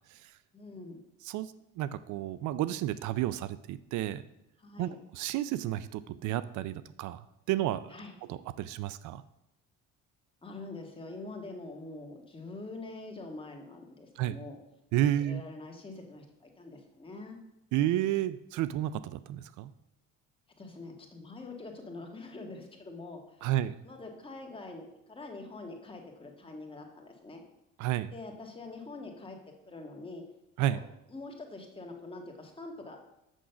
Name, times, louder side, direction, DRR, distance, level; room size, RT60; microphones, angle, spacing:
voice 1, 0.5-1.0 4.6-5.0 7.9-8.1 10.4-14.6 15.2-17.4 20.6-23.4 23.8-27.4 28.1-29.4 29.7-30.2 30.6-30.8 31.1-33.0, left 2 dB, 15° left, 2 dB, 1.7 m, -44 dB
voice 2, 1.8-4.2 4.8-4.9 5.1-7.9 8.3-9.2 14.2-14.3 14.9-15.4 17.7-19.7 23.4-23.8 27.8-28.1 30.6-30.8, right 13 dB, 75° right, 16 dB, 0.5 m, -31 dB
6.3 x 6.3 x 6.9 m, 0.87 s
cardioid pair, 115°, 30 cm